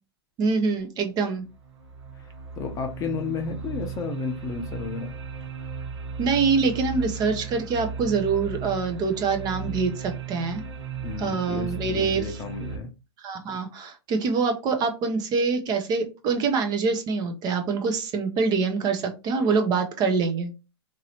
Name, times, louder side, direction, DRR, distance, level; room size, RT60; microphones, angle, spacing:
voice 1, 0.4-1.4 6.2-10.6 11.2-12.2 13.2-20.5, right 4 dB, 30° right, 0.7 m, -25 dB
sound 1, 1.4-12.8, right 6 dB, 80° right, 0.9 m, -36 dB
voice 2, 2.2-5.1 11.0-12.9, left 6 dB, 25° left, 0.6 m, -33 dB
3.0 x 2.7 x 2.8 m
hypercardioid pair, 125°, 14 cm